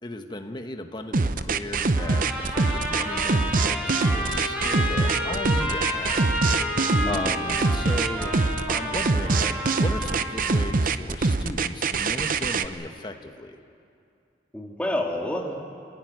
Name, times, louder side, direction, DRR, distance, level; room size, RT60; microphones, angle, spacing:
voice 1, 0.0-8.4 8.7-13.6, left 1 dB, 25° left, 5 dB, 1.2 m, -36 dB
sound 1, 1.1-12.7, right 3 dB, 50° right, 0.7 m, -24 dB
Trumpet, 2.0-10.6, left 1 dB, 10° right, 6.5 m, -31 dB
voice 2, 6.9-7.5 14.5-15.6, left 1 dB, 10° left, 0 dB, 2.3 m, -29 dB
26.5 x 15.5 x 9.4 m, 2.5 s
head